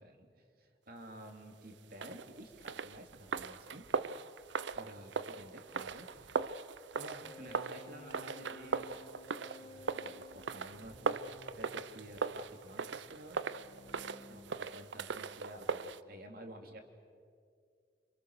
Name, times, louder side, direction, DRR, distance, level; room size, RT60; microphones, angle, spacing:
voice 1, 0.0-3.8 4.7-6.6 6.9-9.0 9.3-13.4 14.3-16.8, right 1 dB, 55° right, 4 dB, 3.2 m, -52 dB
sound 1, 1.9-16.0, right 5 dB, 90° right, 0.7 m, -39 dB
sound 2, 7.2-14.8, left 2 dB, 40° left, 3.4 m, -55 dB
29.5 x 27.0 x 6.7 m, 2.2 s
head